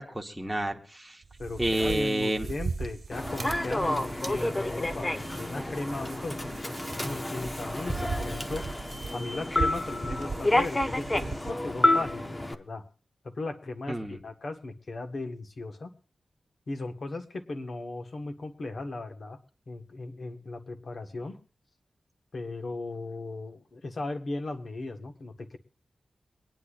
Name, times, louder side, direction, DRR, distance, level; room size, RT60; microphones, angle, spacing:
voice 1, 0.0-1.2 1.6-2.5 13.9-14.2, right 1 dB, 5° right, 3 dB, 1.2 m, -29 dB
sound 1, 1.2-11.5, right 4 dB, 60° right, 1.6 m, -39 dB
voice 2, 1.4-6.4 6.8-8.7 9.1-12.8 13.2-15.9 16.7-19.4 19.7-21.4 22.3-25.6, left 2 dB, 55° left, 6 dB, 1.4 m, -37 dB
Human voice / Subway metro underground, 3.1-12.5, left 1 dB, 20° left, 0.7 m, -29 dB
23.5 x 10.0 x 2.5 m, 0.37 s
wide cardioid pair, 150°, 0 cm